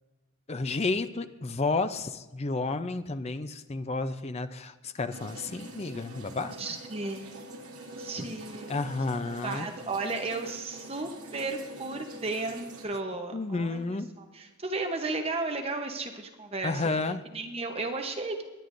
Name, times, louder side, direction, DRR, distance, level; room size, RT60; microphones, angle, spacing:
voice 1, 0.5-6.6 8.7-9.7 13.3-14.1 16.6-17.2, left 3 dB, 30° left, 11 dB, 0.5 m, -31 dB
sound 1, 5.1-12.8, right 1 dB, 80° right, 2.0 m, -45 dB
voice 2, 6.6-8.9 9.4-13.8 14.2-16.8 17.3-18.4, right 3 dB, 25° right, 4 dB, 0.9 m, -34 dB
22.5 x 9.9 x 2.6 m, 1.3 s
head